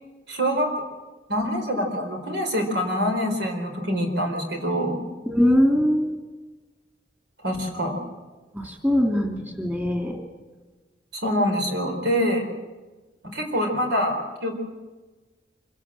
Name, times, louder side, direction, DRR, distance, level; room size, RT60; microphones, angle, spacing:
voice 1, 0.3-0.7 1.3-5.0 7.4-8.0 11.1-12.5 13.3-14.6, equal, 75° right, 4 dB, 4.5 m, -25 dB
voice 2, 5.3-6.2 8.5-10.2, equal, 10° right, 2 dB, 2.6 m, -22 dB
26.0 x 16.5 x 7.7 m, 1.3 s
head